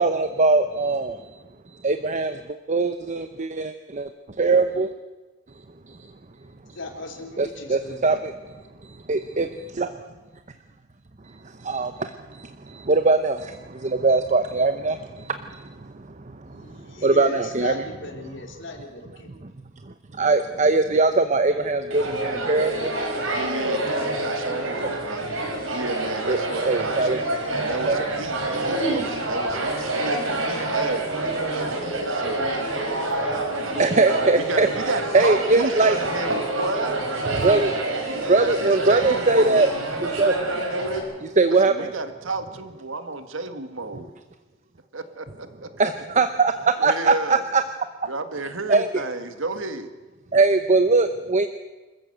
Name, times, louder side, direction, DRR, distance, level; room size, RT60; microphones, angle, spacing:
voice 1, 0.0-4.1 4.4-4.9 5.9-6.1 7.4-8.3 8.8-9.9 11.2-16.1 16.5-16.6 17.0-17.8 19.8-22.9 26.3-26.4 26.6-27.2 27.9-28.0 31.8-31.9 33.6-34.7 35.1-36.0 37.3-37.8 38.3-39.7 40.2-40.4 41.2-41.9 45.8-47.6 48.7-48.9 50.3-51.5, right 3 dB, 35° right, 9 dB, 0.8 m, -22 dB
voice 2, 6.7-8.2 16.5-19.3, left 2 dB, 65° left, 3 dB, 3.5 m, -37 dB
Telephone, 21.5-37.5, left 2 dB, ahead, 4.0 m, -39 dB
sound 1, 21.9-41.0, right 2 dB, 85° right, 4.9 m, -27 dB
voice 3, 23.3-25.2 25.7-27.1 27.5-32.5 34.4-37.0 38.1-39.7 41.6-44.1 44.9-45.7 46.8-47.4 48.1-49.9, right 3 dB, 70° right, 9 dB, 1.8 m, -32 dB
26.5 x 14.5 x 8.0 m, 1.2 s
head